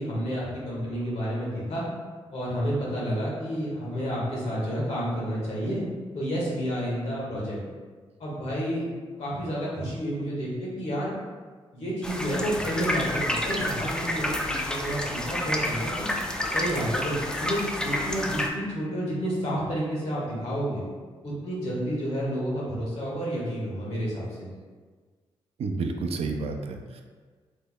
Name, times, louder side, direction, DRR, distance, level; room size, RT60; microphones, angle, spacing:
voice 1, 0.0-1.9 2.3-5.8 6.1-7.6 8.2-8.9 9.2-11.1 11.7-16.1 16.5-20.8 21.2-24.2, equal, 75° left, -6 dB, 1.3 m, -30 dB
sound 1, 12.0-18.5, left 1 dB, 5° left, 0.4 m, -29 dB
voice 2, 25.6-27.0, right 3 dB, 65° right, 4 dB, 0.4 m, -30 dB
3.3 x 2.0 x 3.6 m, 1.5 s
cardioid pair, 65°, 11 cm